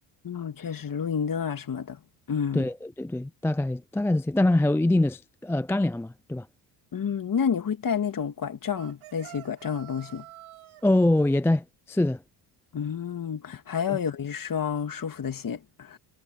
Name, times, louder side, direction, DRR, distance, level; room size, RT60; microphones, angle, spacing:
voice 1, 0.2-2.0 2.3-2.7 6.9-10.2 12.7-16.0, left 7 dB, 40° left, 2.7 m, -30 dB
voice 2, 2.5-6.5 10.8-12.2 13.9-14.0, left 1 dB, 5° left, 0.5 m, -24 dB
sound 1, 8.7-10.8, right 17 dB, 75° right, 3.5 m, -47 dB
supercardioid pair, 85°, 49 cm